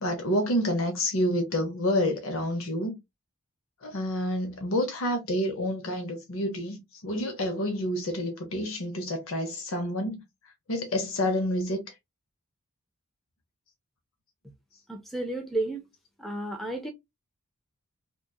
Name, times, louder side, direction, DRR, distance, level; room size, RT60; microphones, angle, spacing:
voice 1, 0.0-3.0 3.8-10.2 10.7-11.9, left 1 dB, 65° left, 0.6 m, -28 dB
voice 2, 14.9-15.9 16.2-16.9, right 2 dB, ahead, 0.4 m, -32 dB
2.8 x 2.2 x 2.2 m
head